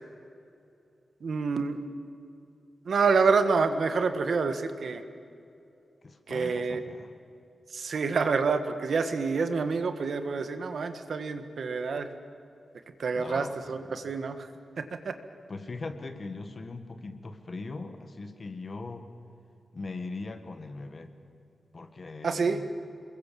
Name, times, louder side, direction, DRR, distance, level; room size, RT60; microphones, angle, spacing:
voice 1, 1.2-1.8 2.8-5.0 6.3-6.8 7.7-12.1 13.0-14.5 14.8-15.1 22.2-22.6, right 4 dB, 60° right, 8 dB, 1.6 m, -27 dB
voice 2, 6.0-7.1 13.1-14.0 15.5-19.1 19.7-21.1 21.7-22.7, left 3 dB, 35° left, 8 dB, 1.7 m, -40 dB
28.5 x 22.0 x 7.6 m, 2.6 s
wide cardioid pair, 175°, 0 cm